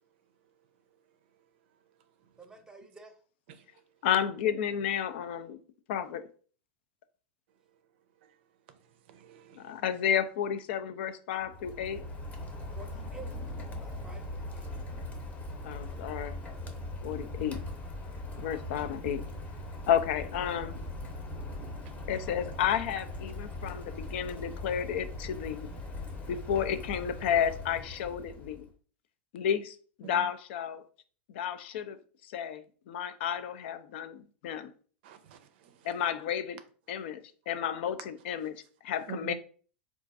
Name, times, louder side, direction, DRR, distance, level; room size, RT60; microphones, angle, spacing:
voice 1, 2.4-3.2 12.7-13.4 13.8-14.7, right 4 dB, 10° right, 0.7 m, -50 dB
voice 2, 4.0-5.6 5.9-6.2 9.5-12.0 15.6-16.4 17.0-17.6 18.4-19.2 19.9-20.8 22.1-25.7 26.3-28.7 29.3-30.8 31.3-34.7 35.8-36.6 36.9-39.3, left 9 dB, 65° left, 0.4 m, -32 dB
voice 3, 9.1-9.8 23.6-23.7 30.0-30.2 35.0-35.7 39.1-39.3, right 10 dB, 65° right, 0.5 m, -46 dB
Rain, 11.4-28.7, left 2 dB, 25° left, 0.8 m, -40 dB
3.7 x 2.4 x 2.5 m
hypercardioid pair, 100°, 6 cm